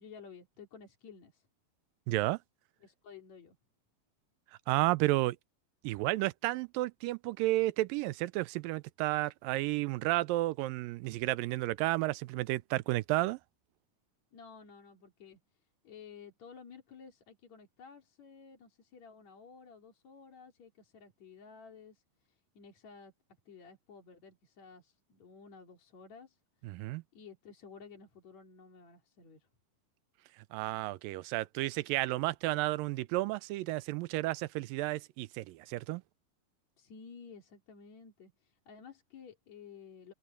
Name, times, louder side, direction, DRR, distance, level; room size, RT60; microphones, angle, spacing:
voice 1, 0.0-1.5 2.8-3.6 14.3-23.1 23.5-26.8 27.1-29.5 36.8-40.1, left 6 dB, 55° left, 4.2 m, -53 dB
voice 2, 2.1-2.4 4.7-5.4 5.8-13.4 26.6-27.0 30.5-36.0, right 18 dB, 90° right, 2.3 m, -32 dB
open air
omnidirectional pair, 4.0 m